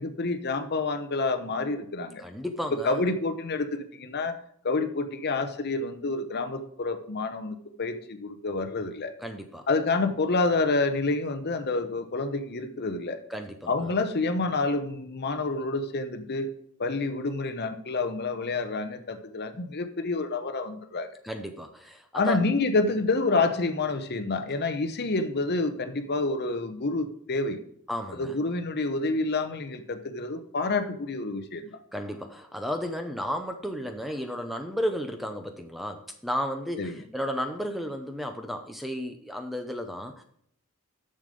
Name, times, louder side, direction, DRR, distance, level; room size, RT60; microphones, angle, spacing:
voice 1, 0.0-2.2 2.7-4.4 4.6-9.1 9.7-13.2 13.7-16.5 16.8-21.1 22.1-27.6 28.1-31.7 36.8-37.0, left 3 dB, 45° left, 8 dB, 0.8 m, -28 dB
voice 2, 2.2-3.0 9.2-9.6 13.3-13.9 21.2-22.4 27.9-28.3 31.9-40.2, equal, ahead, 6 dB, 0.5 m, -33 dB
7.2 x 6.7 x 5.1 m, 0.67 s
head